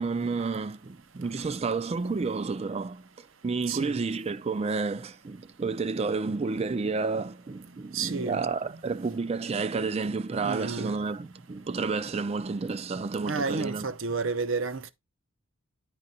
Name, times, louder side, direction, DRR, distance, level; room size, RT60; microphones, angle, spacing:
voice 1, 0.0-13.9, right 4 dB, 30° right, 0.4 m, -30 dB
voice 2, 3.7-4.0 7.9-8.4 10.4-11.0 13.3-14.9, right 4 dB, 65° right, 0.8 m, -31 dB
10.5 x 3.9 x 4.2 m
head